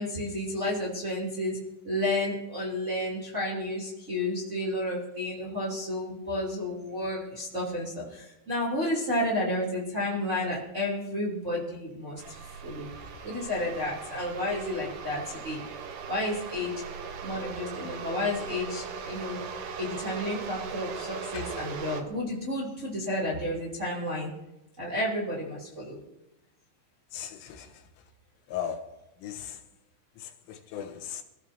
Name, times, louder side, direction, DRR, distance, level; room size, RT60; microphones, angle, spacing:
voice 1, 0.0-1.6 1.8-12.9 13.2-15.6 16.1-16.8 17.2-19.4 19.7-24.3 24.8-26.0, left 1 dB, 20° right, 2.4 m, -31 dB
sound 1, 12.2-22.0, right 6 dB, 75° right, 1.9 m, -39 dB
voice 2, 27.1-27.7 28.5-29.0 29.2-29.6 30.2-31.2, left 9 dB, 85° left, 3.6 m, -38 dB
27.5 x 14.5 x 2.8 m
omnidirectional pair, 5.6 m